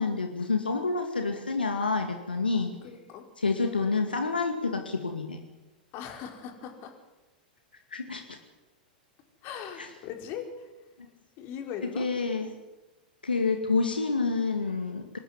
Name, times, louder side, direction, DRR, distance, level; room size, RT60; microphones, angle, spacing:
voice 1, 0.0-2.8 3.4-5.4 7.9-8.2 9.8-9.9 12.0-12.5 13.2-15.2, left 4 dB, 85° left, 5 dB, 2.3 m, -28 dB
voice 2, 2.8-3.2 5.9-6.9 9.4-10.7 11.4-12.1, left 8 dB, 45° left, 4 dB, 4.8 m, -39 dB
25.5 x 13.5 x 9.6 m, 1.1 s
figure-of-eight pair, 95°, 5 cm